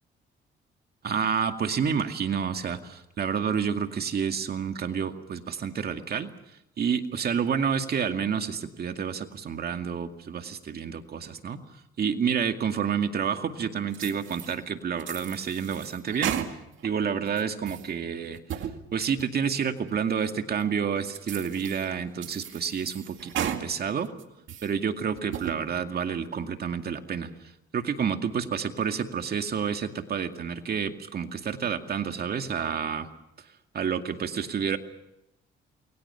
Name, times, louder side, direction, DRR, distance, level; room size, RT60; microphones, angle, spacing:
voice 1, 1.0-6.3 6.8-11.6 12.0-16.6 16.8-24.1 24.6-27.3 27.7-33.1 33.7-34.8, right 7 dB, 50° right, 6 dB, 2.3 m, -29 dB
sound 1, 13.9-14.6 15.0-16.9 17.3-17.9 18.3-18.8 19.2-19.3 19.9-20.0 20.6-20.7 21.1-21.9 22.2-23.6 24.1-24.7 25.2-25.6, right 9 dB, 75° right, 2.2 m, -35 dB
29.0 x 23.0 x 5.8 m, 0.82 s
cardioid pair, 90°, 20 cm